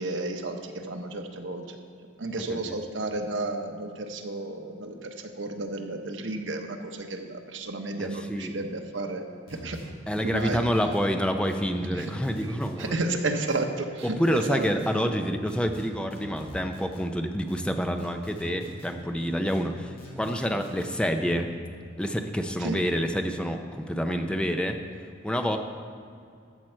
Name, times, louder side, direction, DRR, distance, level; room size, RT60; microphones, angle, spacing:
voice 1, 0.0-1.8 2.2-9.8 10.2-10.6 11.9-12.1 12.4-14.7 22.6-22.8, right 2 dB, 90° right, 4 dB, 1.0 m, -32 dB
voice 2, 8.0-8.5 10.1-13.0 14.0-21.5 22.0-24.8 25.2-25.6, equal, 5° left, 5 dB, 0.6 m, -28 dB
sound 1, 9.5-11.1 11.5-12.9 13.5-14.9 15.5-17.1 17.5-18.9 19.5-20.9, equal, 50° left, 2.3 m, -44 dB
14.0 x 7.5 x 4.5 m, 2.4 s
head